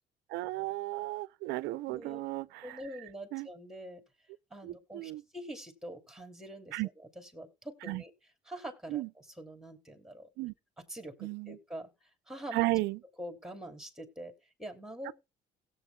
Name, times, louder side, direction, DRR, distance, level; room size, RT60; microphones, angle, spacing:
voice 1, 0.3-2.8 3.3-3.5 4.6-5.2 6.7-6.9 7.8-8.0 8.9-9.1 10.4-10.5 11.2-11.6 12.5-13.0 15.1-15.2, right 19 dB, 85° right, 0.4 m, -34 dB
voice 2, 1.9-2.2 2.6-4.0 4.5-6.8 7.2-8.1 8.4-10.3 10.9-12.6 13.2-15.1, right 1 dB, 5° right, 2.7 m, -45 dB
17.0 x 8.0 x 2.2 m
cardioid pair, 110°, 17 cm